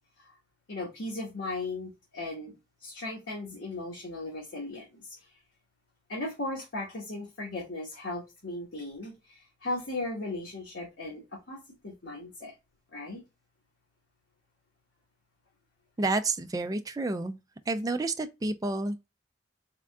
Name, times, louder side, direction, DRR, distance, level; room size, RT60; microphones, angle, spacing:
voice 1, 0.7-5.2 6.1-12.5 12.9-13.2, left 2 dB, 80° left, 1.2 m, -37 dB
voice 2, 16.0-17.4 17.7-19.1, right 2 dB, 20° right, 0.4 m, -30 dB
3.6 x 3.5 x 2.2 m
head